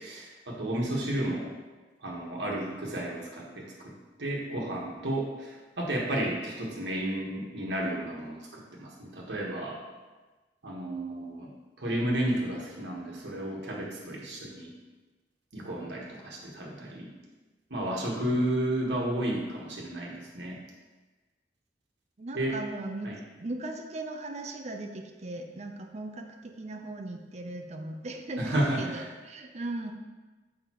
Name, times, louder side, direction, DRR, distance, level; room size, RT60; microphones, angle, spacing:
voice 1, 0.0-1.5 2.0-3.9 4.2-9.8 10.6-11.5 11.8-14.7 15.5-17.1 17.7-20.6 22.3-22.6 23.0-23.1 28.4-29.1, right 1 dB, 75° right, -3 dB, 1.4 m, -32 dB
voice 2, 22.2-23.1 23.4-29.9, right 2 dB, 40° right, 4 dB, 0.5 m, -38 dB
6.6 x 5.2 x 3.0 m, 1.2 s
head